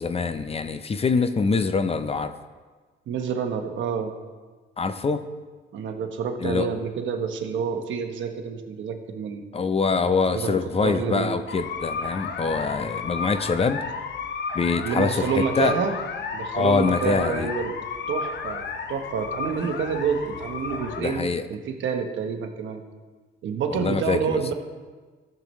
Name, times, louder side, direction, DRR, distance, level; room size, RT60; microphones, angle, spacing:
voice 1, 0.0-2.3 4.8-5.2 6.4-6.7 9.5-13.8 14.5-15.7 16.5-17.5 21.0-21.4 23.7-24.5, left 4 dB, 30° left, 10 dB, 0.6 m, -24 dB
voice 2, 3.1-4.1 5.7-9.5 10.3-11.3 14.8-15.9 16.3-17.7 18.1-22.8 23.4-24.5, right 6 dB, 70° right, 5 dB, 1.1 m, -28 dB
sound 1, 11.5-21.0, left 5 dB, 60° left, 0.8 m, -32 dB
13.5 x 6.7 x 3.1 m, 1.4 s
cardioid pair, 90°, 20 cm